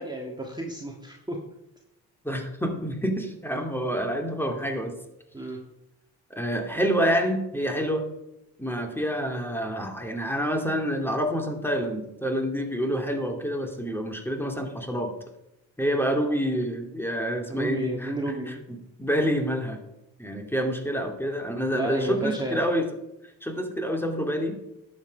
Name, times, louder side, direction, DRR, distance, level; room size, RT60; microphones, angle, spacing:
voice 1, 0.0-1.4 5.3-5.6 17.5-18.6 21.7-22.6, right 1 dB, 10° right, 0 dB, 1.8 m, -32 dB
voice 2, 2.2-4.9 6.3-8.1 8.6-15.1 15.8-18.1 18.5-19.8 20.2-22.9 23.4-24.6, equal, 5° left, 3 dB, 2.4 m, -27 dB
11.5 x 7.8 x 5.2 m, 0.89 s
supercardioid pair, 65°, 42 cm